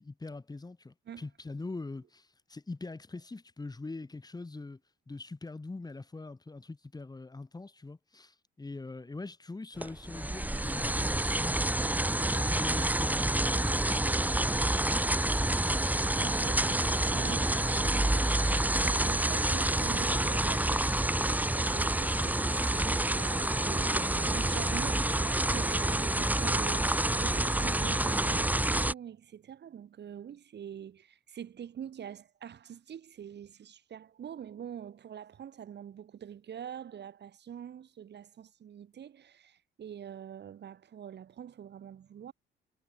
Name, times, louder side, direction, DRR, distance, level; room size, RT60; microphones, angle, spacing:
voice 1, 0.0-4.8 5.1-11.9 12.3-15.0, left 3 dB, 20° left, 3.5 m, -43 dB
sound 1, 9.8-28.9, right 1 dB, 10° right, 1.7 m, -28 dB
voice 2, 16.2-42.3, right 9 dB, 60° right, 4.6 m, -45 dB
cardioid pair, 90°, 20 cm